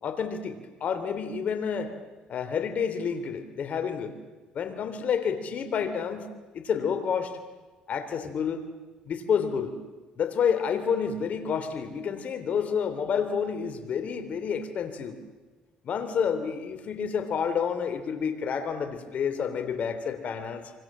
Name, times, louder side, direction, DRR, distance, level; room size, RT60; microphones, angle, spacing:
voice 1, 0.0-1.9 2.3-4.1 4.5-6.3 6.5-7.4 7.9-8.7 9.0-9.8 10.2-15.2 15.8-20.7, left 7 dB, 55° left, 10 dB, 3.4 m, -29 dB
27.5 x 25.0 x 7.5 m, 1.3 s
supercardioid pair, 80°, 3 cm